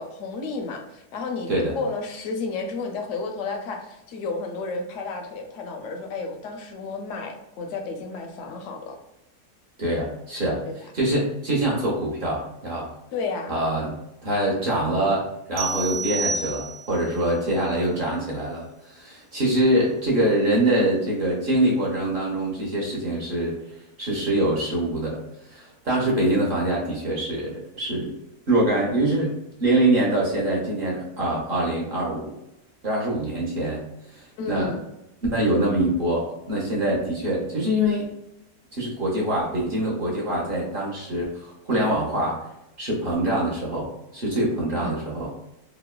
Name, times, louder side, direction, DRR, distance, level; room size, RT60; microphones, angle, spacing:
voice 1, 0.0-9.0 10.6-10.7 13.1-13.5 34.4-34.8 44.7-45.0, left 3 dB, 70° left, 4 dB, 0.8 m, -32 dB
voice 2, 1.5-1.8 9.8-10.6 10.9-12.9 13.5-13.9 14.2-23.6 24.0-25.2 25.5-28.1 28.5-29.3 29.6-32.3 32.8-33.8 34.1-34.7 35.3-38.0 38.7-42.4 42.8-45.3, right 1 dB, 50° right, -4 dB, 0.7 m, -24 dB
sound 1, 15.6-17.1, right 3 dB, 70° right, 1.0 m, -29 dB
3.0 x 2.0 x 2.2 m, 0.88 s
omnidirectional pair, 1.6 m